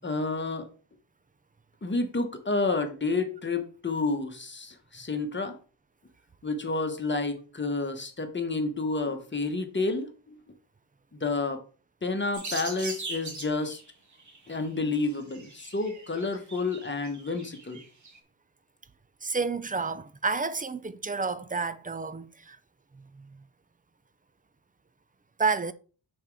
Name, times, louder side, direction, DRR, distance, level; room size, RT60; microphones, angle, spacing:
voice 1, 0.0-0.7 1.8-5.5 6.4-10.3 11.1-11.6 12.0-13.8 14.5-17.8, left 3 dB, 25° left, 1.1 m, -30 dB
sound 1, 12.3-13.8 14.2-14.5 15.1-18.2, right 3 dB, 40° right, 1.4 m, -40 dB
voice 2, 19.2-22.6 22.9-23.5 25.4-25.7, right 4 dB, 20° right, 0.4 m, -30 dB
5.8 x 4.4 x 4.7 m
wide cardioid pair, 110°, 47 cm